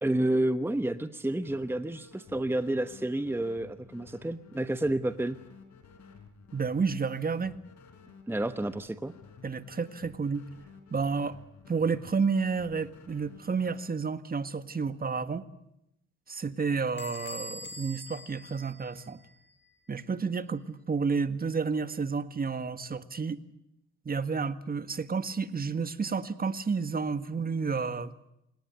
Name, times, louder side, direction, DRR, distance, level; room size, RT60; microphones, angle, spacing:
voice 1, 0.0-5.4 8.3-9.1, right 1 dB, 5° right, 11 dB, 1.1 m, -30 dB
sound 1, 1.4-13.8, left 5 dB, 65° left, 4.6 m, -53 dB
voice 2, 6.5-7.5 9.4-10.4 10.9-11.4 11.7-15.5 16.3-19.2 19.9-23.4 24.1-28.1, right 5 dB, 30° right, 12 dB, 1.7 m, -30 dB
Bell / Door, 17.0-19.5, left 2 dB, 35° left, 4.8 m, -44 dB
29.0 x 18.5 x 9.7 m, 0.84 s
cardioid pair, 90°, 30 cm